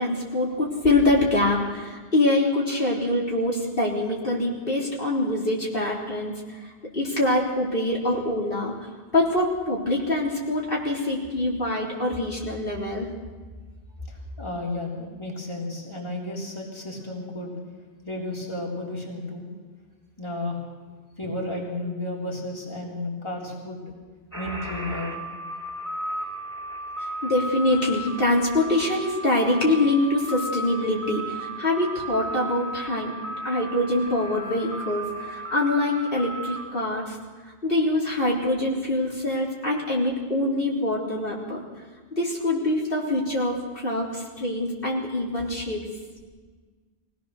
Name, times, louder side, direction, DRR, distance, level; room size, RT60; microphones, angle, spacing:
voice 1, 0.0-8.7 9.1-13.1 27.2-33.1 33.4-37.2 37.6-41.6 42.2-45.9, left 1 dB, 60° left, -4 dB, 3.9 m, -24 dB
voice 2, 14.1-17.6 18.1-19.5 20.2-20.6 21.2-23.8 24.3-25.2, left 2 dB, 25° left, -3 dB, 3.7 m, -33 dB
sound 1, 24.3-36.6, right 1 dB, 15° right, 4.0 m, -35 dB
23.5 x 17.5 x 6.6 m, 1.4 s
omnidirectional pair, 1.1 m